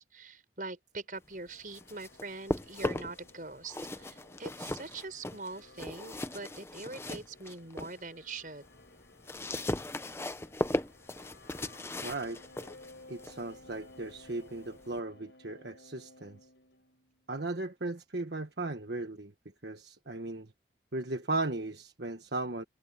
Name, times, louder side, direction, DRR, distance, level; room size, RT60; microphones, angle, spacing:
voice 1, 0.0-8.6, right 3 dB, 50° right, 6.1 m, -43 dB
sound 1, 1.1-17.4, left 2 dB, 90° left, 4.9 m, -57 dB
sound 2, 1.5-3.3 3.6-8.0 8.4-15.0, left 1 dB, 15° left, 0.7 m, -38 dB
voice 2, 12.0-12.4 13.1-16.4 17.3-19.3 19.6-20.5 20.9-22.6, right 2 dB, 70° right, 1.4 m, -36 dB
head